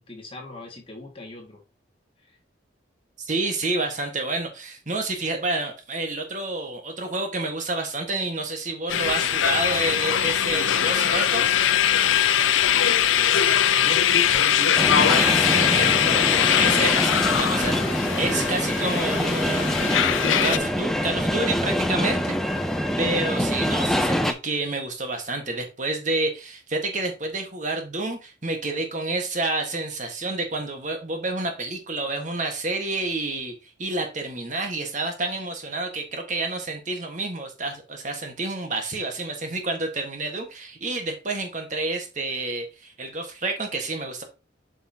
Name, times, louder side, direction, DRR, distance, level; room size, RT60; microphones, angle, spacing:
voice 1, 0.1-1.6 13.7-14.8, left 2 dB, 30° left, 1 dB, 2.0 m, -36 dB
voice 2, 3.2-11.5 15.1-22.7 23.0-44.2, right 2 dB, 40° right, 4 dB, 1.5 m, -29 dB
sound 1, 8.9-20.6, left 9 dB, 85° left, 0.6 m, -21 dB
sound 2, 14.8-24.3, equal, ahead, 0.6 m, -25 dB
7.9 x 5.5 x 2.8 m, 0.28 s
head